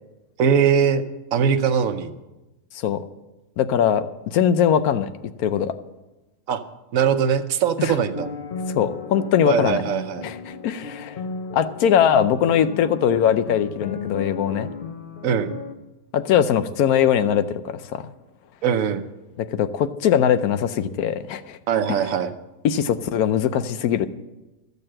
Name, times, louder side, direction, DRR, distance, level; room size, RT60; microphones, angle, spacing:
voice 1, 0.4-1.0 1.3-2.1 6.5-6.6 6.9-8.3 9.4-10.3 15.2-15.5 18.6-19.1 21.7-22.3, right 7 dB, 65° right, 9 dB, 1.1 m, -21 dB
voice 2, 3.6-5.1 5.4-5.7 7.8-7.9 8.7-9.8 10.2-11.2 11.5-14.7 16.1-18.1 19.4-21.6 22.6-24.1, left 9 dB, 75° left, 12 dB, 1.1 m, -21 dB
sound 1, 7.9-15.7, left 4 dB, 50° left, 0.7 m, -34 dB
13.5 x 6.7 x 7.6 m, 1.1 s
omnidirectional pair, 1.6 m